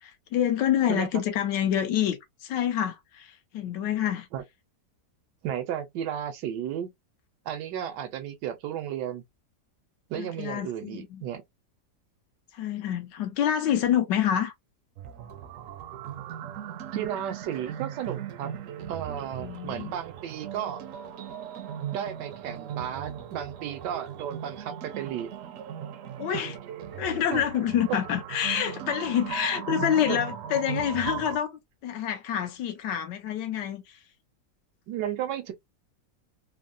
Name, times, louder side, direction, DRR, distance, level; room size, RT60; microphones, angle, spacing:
voice 1, 0.0-4.3 10.1-11.2 12.5-14.5 19.4-19.9 26.2-26.5 27.0-34.0, left 10 dB, 80° left, 1.3 m, -27 dB
voice 2, 5.4-6.9 7.5-9.2 10.1-11.4 16.9-18.5 18.9-20.8 21.9-25.3 26.3-26.4 27.3-27.4 27.9-28.0 30.1-30.2 34.9-35.5, right 10 dB, 85° right, 1.2 m, -33 dB
sound 1, 15.0-31.4, right 8 dB, 70° right, 0.8 m, -38 dB
3.6 x 2.0 x 2.4 m
omnidirectional pair, 1.8 m